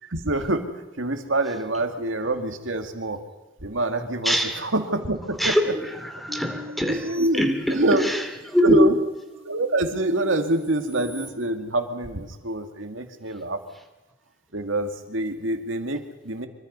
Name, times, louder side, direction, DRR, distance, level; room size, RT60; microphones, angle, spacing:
voice 1, 0.0-3.2 3.6-5.7 6.9-7.4 7.7-8.1 8.6-9.0 9.4-13.6 14.5-16.5, right 1 dB, 80° right, 2.3 m, -26 dB
voice 2, 4.2-4.7 5.4-9.0, equal, ahead, 2.8 m, -23 dB
sound 1, 6.3-8.2 8.8-11.3, left 2 dB, 30° right, 3.3 m, -41 dB
25.5 x 23.0 x 5.5 m
head